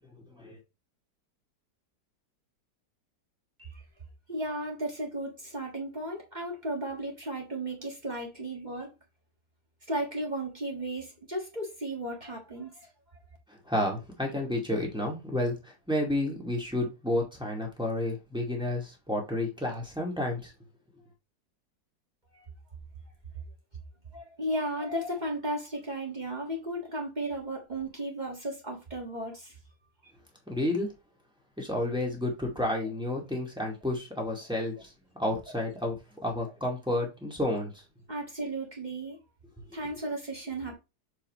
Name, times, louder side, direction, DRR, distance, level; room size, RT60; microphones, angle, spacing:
voice 1, 0.3-0.6 13.5-20.5 30.5-30.9 31.6-34.9 35.2-37.8 39.6-39.8, left 1 dB, 5° right, 1.9 m, -31 dB
voice 2, 4.3-8.9 9.9-13.2 22.3-22.4 24.1-29.5 38.1-39.2 39.7-40.7, right 1 dB, 25° right, 1.6 m, -35 dB
6.8 x 4.8 x 3.1 m
omnidirectional pair, 1.9 m